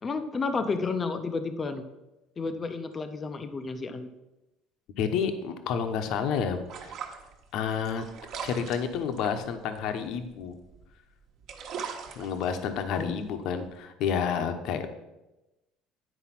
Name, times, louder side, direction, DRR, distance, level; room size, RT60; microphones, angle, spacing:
voice 1, 0.0-1.8 2.4-4.1 13.0-13.2, left 4 dB, 20° left, 8 dB, 0.5 m, -31 dB
voice 2, 5.0-6.9 7.5-8.0 8.4-10.6 12.2-14.9, left 7 dB, 55° left, 7 dB, 0.9 m, -30 dB
sound 1, 5.9-10.9 11.3-13.7, right 6 dB, 50° right, 1.2 m, -42 dB
10.0 x 4.7 x 5.9 m, 0.98 s
cardioid pair, 160°, 0 cm